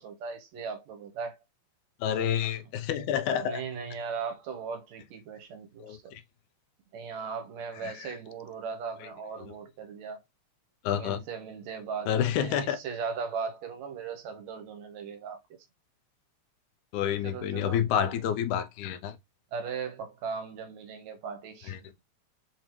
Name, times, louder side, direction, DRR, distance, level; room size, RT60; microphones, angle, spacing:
voice 1, 0.0-1.4 2.5-2.6 3.4-6.1 6.9-10.2 10.9-15.4 17.2-17.8 19.5-21.7, right 5 dB, 75° right, 1.9 m, -38 dB
voice 2, 2.0-3.6 5.8-6.2 7.8-8.1 9.4-9.5 10.8-11.2 12.1-12.8 16.9-19.2 21.7-21.8, left 9 dB, 85° left, 2.1 m, -29 dB
5.7 x 2.6 x 3.0 m
omnidirectional pair, 3.4 m